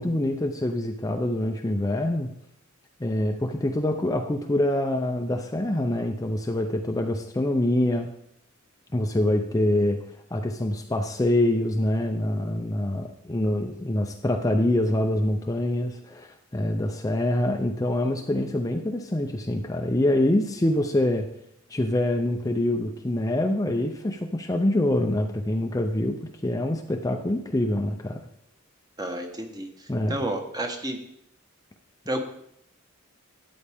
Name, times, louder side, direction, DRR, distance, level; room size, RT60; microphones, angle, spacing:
voice 1, 0.0-2.3 3.0-8.1 8.9-10.0 10.3-21.3 21.7-28.2 29.9-30.2, left 1 dB, 15° left, 3 dB, 0.5 m, -25 dB
voice 2, 29.0-29.7 30.1-31.0 32.1-32.2, right 1 dB, 20° right, 4 dB, 1.1 m, -30 dB
13.0 x 8.5 x 3.5 m, 0.74 s
head